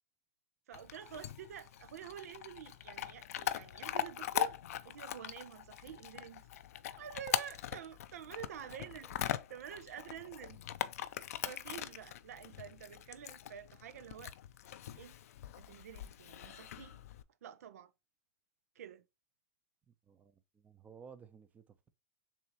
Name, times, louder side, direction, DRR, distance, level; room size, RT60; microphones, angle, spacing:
Chewing mastication / Dog, 0.7-17.2, left 11 dB, 80° left, 0.5 m, -41 dB
voice 1, 0.7-4.6 4.8-6.5 7.0-10.6 11.4-14.3 15.0-15.2 15.5-17.0 17.4-17.9 18.8-19.0, right 9 dB, 85° right, 0.5 m, -48 dB
voice 2, 19.9-21.9, right 6 dB, 20° right, 0.6 m, -56 dB
7.0 x 2.6 x 2.9 m
hypercardioid pair, 130°, 8 cm